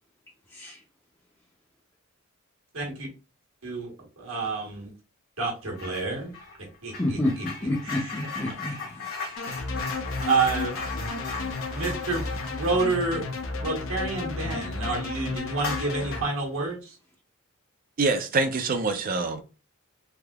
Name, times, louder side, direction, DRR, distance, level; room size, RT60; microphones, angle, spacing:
voice 1, 2.7-3.1 3.6-4.9 5.4-6.3 6.8-7.2 7.8-8.1 10.2-10.7 11.7-12.2 12.5-13.2 13.6-16.9, right 3 dB, 65° right, 1.3 m, -28 dB
sound 1, 5.7-6.1 6.3-14.5 14.9-15.0 15.5-16.4, left 4 dB, 75° left, 1.3 m, -38 dB
voice 2, 7.0-8.7 9.4-9.6, left 1 dB, 15° left, 0.5 m, -29 dB
sound 2, 9.4-16.2, left 3 dB, 60° left, 0.5 m, -33 dB
voice 3, 18.0-19.4, right 3 dB, 40° right, 0.4 m, -25 dB
3.4 x 2.7 x 2.3 m
head